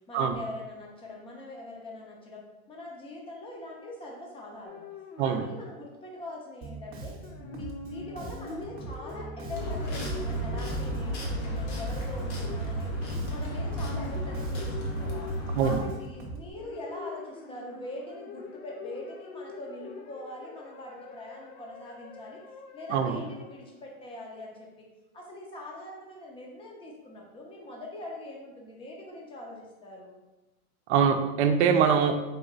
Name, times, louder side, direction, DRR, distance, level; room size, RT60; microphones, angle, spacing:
voice 1, 0.1-4.8 5.2-7.2 7.5-13.0 13.3-15.3 15.6-22.4 22.7-24.9 25.1-30.2, left 1 dB, 15° left, -1 dB, 0.7 m, -43 dB
sound 1, 4.6-6.0 7.2-23.9, left 5 dB, 70° left, 0.8 m, -44 dB
Bass guitar, 6.6-16.5, right 3 dB, 30° right, 0.9 m, -42 dB
sound 2, 9.5-15.8, equal, 50° left, 1.3 m, -33 dB
voice 2, 30.9-32.2, right 7 dB, 55° right, 6 dB, 0.6 m, -23 dB
4.1 x 2.8 x 4.0 m, 1.1 s
hypercardioid pair, 120°, 42 cm